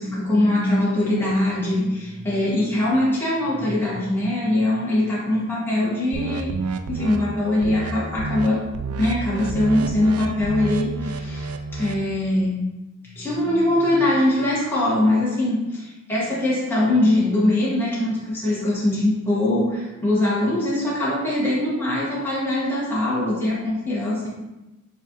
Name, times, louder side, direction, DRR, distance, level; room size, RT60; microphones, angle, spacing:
voice 1, 0.0-6.5 6.9-8.6 9.0-12.6 13.1-24.3, left 1 dB, 10° left, -8 dB, 1.4 m, -22 dB
sound 1, 6.1-7.2 7.6-7.9 8.2-8.5 8.7-12.0, right 3 dB, 90° right, 0.3 m, -29 dB
7.1 x 2.5 x 2.9 m, 1.0 s
head